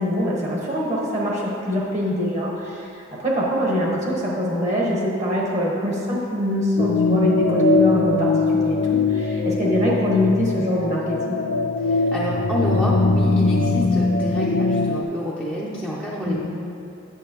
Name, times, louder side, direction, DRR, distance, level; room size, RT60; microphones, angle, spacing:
voice 1, 0.0-11.4 16.3-16.4, equal, 35° right, -3 dB, 1.0 m, -24 dB
sound 1, 6.8-15.0, left 3 dB, 60° left, 0.4 m, -21 dB
voice 2, 11.8-16.4, equal, 5° right, -7 dB, 0.6 m, -28 dB
8.3 x 7.3 x 2.9 m, 2.7 s
head